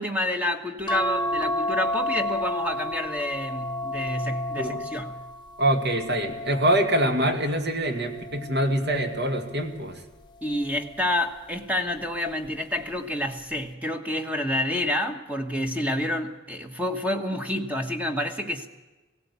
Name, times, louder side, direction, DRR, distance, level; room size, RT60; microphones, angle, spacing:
voice 1, 0.0-5.2 10.4-18.7, left 1 dB, 5° right, 5 dB, 1.2 m, -28 dB
sound 1, 0.9-7.5 8.1-9.5 10.8-11.2 11.5-11.6, left 1 dB, 20° left, 0.8 m, -31 dB
voice 2, 5.6-10.0, right 1 dB, 50° right, 4 dB, 2.3 m, -24 dB
18.5 x 17.0 x 8.3 m, 1.1 s
head